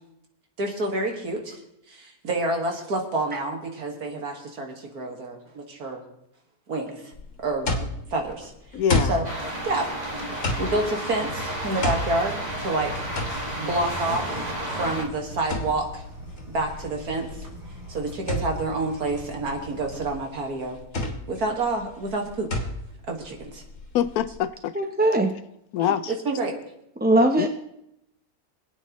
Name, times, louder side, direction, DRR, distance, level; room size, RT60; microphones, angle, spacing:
voice 1, 0.6-1.6 1.9-6.0 6.7-7.1 7.4-8.5 9.1-9.3 9.6-9.9 10.6-13.1 13.6-14.4 14.7-16.0 16.5-17.5 17.9-20.8 21.3-22.7 23.1-23.6 25.8-25.9 26.3-26.6, right 2 dB, 90° right, 2 dB, 2.4 m, -28 dB
sound 1, 7.1-24.4, left 2 dB, 55° left, 2.0 m, -32 dB
voice 2, 8.7-9.1 23.9-24.7 25.7-26.2 27.4-27.5, left 10 dB, 80° left, 13 dB, 1.1 m, -24 dB
sound 2, 9.2-15.0, right 1 dB, 30° right, 1.8 m, -32 dB
sound 3, 11.1-20.1, equal, 45° right, 4.6 m, -41 dB
voice 3, 24.7-25.3 27.0-27.5, right 1 dB, 10° right, 4 dB, 0.5 m, -20 dB
26.0 x 8.9 x 3.1 m, 0.80 s
omnidirectional pair, 1.6 m